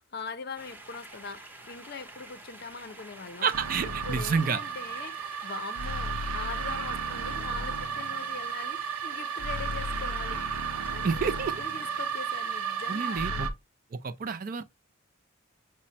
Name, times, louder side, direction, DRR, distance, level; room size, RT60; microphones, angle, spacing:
voice 1, 0.1-3.5 3.8-10.4 10.9-11.3 11.6-13.5, left 4 dB, 50° left, 0.5 m, -42 dB
sound 1, 0.6-13.3, right 1 dB, 10° right, 0.8 m, -48 dB
voice 2, 3.4-4.6 11.0-11.5 12.9-13.5 13.9-14.6, right 5 dB, 40° right, 0.4 m, -29 dB
sound 2, 3.5-13.5, right 5 dB, 90° right, 0.6 m, -33 dB
6.2 x 2.1 x 4.1 m
head